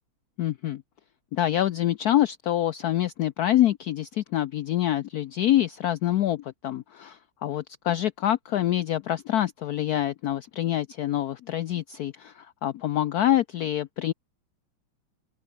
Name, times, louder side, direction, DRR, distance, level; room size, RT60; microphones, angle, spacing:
voice 1, 0.4-0.8 1.3-14.1, left 12 dB, 90° left, 0.8 m, -26 dB
omnidirectional pair, 2.3 m